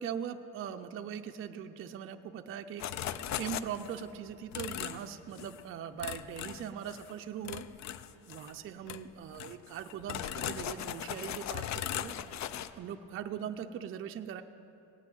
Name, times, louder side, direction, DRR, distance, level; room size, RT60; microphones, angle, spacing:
voice 1, 0.0-7.7 8.3-12.1 12.7-14.4, right 8 dB, 40° right, 6 dB, 0.4 m, -41 dB
sound 1, 2.8-4.0 4.5-5.1 5.4-5.6 6.0-7.1 7.4-8.5 8.9-9.0 9.3-12.7, left 11 dB, 55° left, 0.5 m, -38 dB
16.5 x 6.1 x 9.0 m, 2.8 s
cardioid pair, 160°, 34 cm